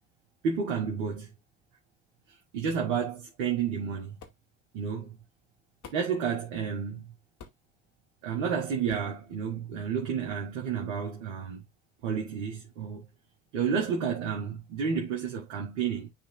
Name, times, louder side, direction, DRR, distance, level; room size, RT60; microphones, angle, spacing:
voice 1, 0.4-1.3 2.5-4.2 4.7-5.2 5.9-7.1 8.2-11.6 12.0-13.1 13.5-16.1, right 6 dB, 75° right, 2.0 m, -31 dB
sound 1, 2.7-2.9 4.2-4.4 5.8-6.2 7.4-7.7 8.9-9.1, left 6 dB, 50° left, 2.5 m, -49 dB
11.5 x 4.0 x 2.4 m
hypercardioid pair, 65°, 39 cm